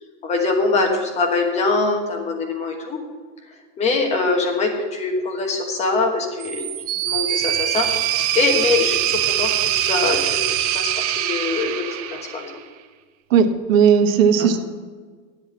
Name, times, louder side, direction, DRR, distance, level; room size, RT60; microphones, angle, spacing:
voice 1, 0.2-3.0 3.8-6.6 7.0-8.1 8.3-12.6 14.4-14.5, left 3 dB, 15° left, 2 dB, 1.3 m, -23 dB
sound 1, 6.4-12.6, right 12 dB, 30° right, 0.4 m, -23 dB
voice 2, 13.3-14.6, right 7 dB, 75° right, 9 dB, 1.3 m, -16 dB
9.8 x 8.0 x 7.2 m, 1.5 s
supercardioid pair, 170°, 40 cm